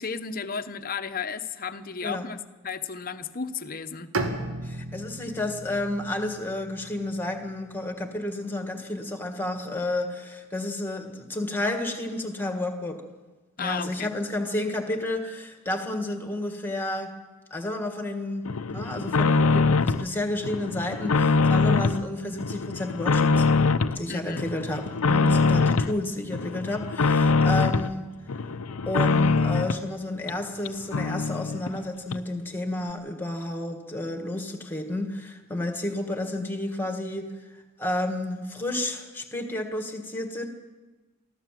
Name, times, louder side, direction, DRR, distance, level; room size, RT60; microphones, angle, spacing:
voice 1, 0.0-4.1 13.6-14.1 24.1-24.5 25.8-25.9, left 5 dB, 40° left, 10 dB, 0.9 m, -34 dB
Bowed string instrument, 4.1-8.1, right 2 dB, 75° right, 2.2 m, -36 dB
voice 2, 4.6-13.0 13.6-17.1 17.5-23.5 24.0-28.1 28.9-37.3 37.8-40.5, left 1 dB, 10° left, 5 dB, 1.9 m, -31 dB
sound 1, 18.5-20.1 20.4-22.0 22.4-24.0 24.4-25.9 26.3-27.9 28.3-29.8 30.3-30.4 30.6-30.7 30.9-31.8 32.1-32.2, left 4 dB, 80° left, 0.7 m, -23 dB
23.5 x 15.0 x 7.7 m, 1.2 s
head